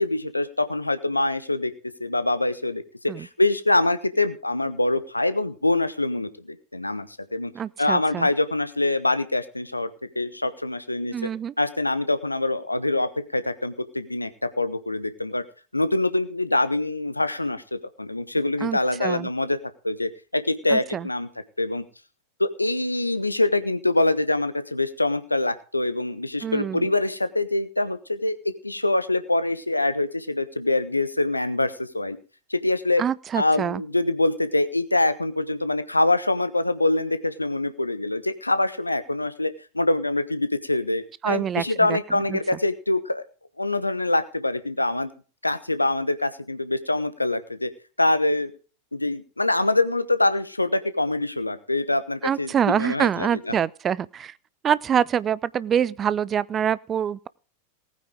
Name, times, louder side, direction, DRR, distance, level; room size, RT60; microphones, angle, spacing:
voice 1, 0.0-1.7 2.0-2.8 3.2-7.5 7.8-9.9 10.1-11.3 11.6-14.3 14.6-15.4 15.7-19.6 19.8-21.3 21.6-21.8 22.4-28.4 28.6-32.2 32.5-33.0 33.3-43.2 43.6-45.1 45.4-47.7 48.0-48.5 48.9-53.6, left 2 dB, 85° left, 1.0 m, -24 dB
voice 2, 7.5-8.3 11.1-11.5 18.6-19.3 20.7-21.1 26.4-26.9 33.0-33.8 41.2-42.0 42.3-42.4 52.2-54.3 54.6-57.3, right 8 dB, 25° right, 0.5 m, -25 dB
19.0 x 9.2 x 3.8 m
figure-of-eight pair, 90°, 0 cm